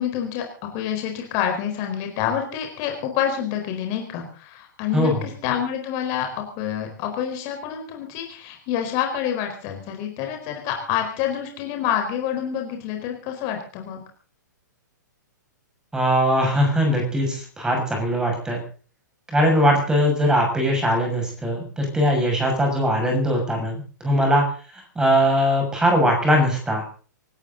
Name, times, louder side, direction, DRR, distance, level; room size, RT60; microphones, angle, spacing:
voice 1, 0.0-14.0, left 9 dB, 35° left, 3 dB, 4.6 m, -27 dB
voice 2, 4.9-5.3 15.9-18.6 19.3-24.4 24.7-26.8, equal, 5° right, 1 dB, 6.7 m, -20 dB
26.0 x 14.0 x 4.0 m, 0.40 s
figure-of-eight pair, 110°, 10 cm